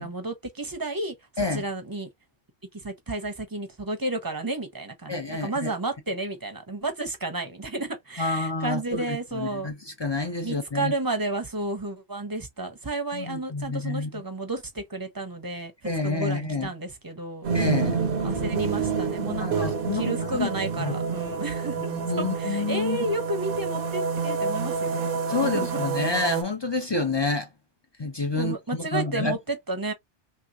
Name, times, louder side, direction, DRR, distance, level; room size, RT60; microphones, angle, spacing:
voice 1, 0.0-2.1 2.7-9.7 10.4-15.7 16.0-17.5 18.2-21.8 22.2-25.8 28.3-29.9, right 2 dB, 20° right, 0.6 m, -32 dB
voice 2, 5.1-5.7 8.2-10.9 13.1-14.2 15.8-16.7 17.5-18.0 19.3-20.5 20.8-20.9 21.9-23.0 25.3-27.5 28.0-29.4, left 3 dB, 35° left, 0.4 m, -29 dB
sound 1, 17.4-26.4, right 5 dB, 55° right, 0.8 m, -28 dB
3.3 x 2.9 x 2.4 m
omnidirectional pair, 1.2 m